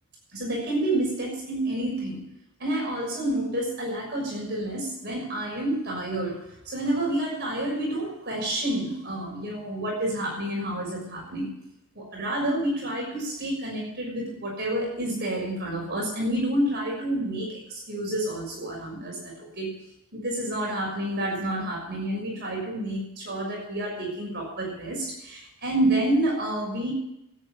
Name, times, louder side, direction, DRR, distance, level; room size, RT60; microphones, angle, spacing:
voice 1, 0.3-2.2 2.6-11.5 11.9-19.7 20.1-26.9, right 1 dB, 50° right, -2 dB, 6.3 m, -29 dB
13.0 x 9.1 x 8.6 m, 0.80 s
head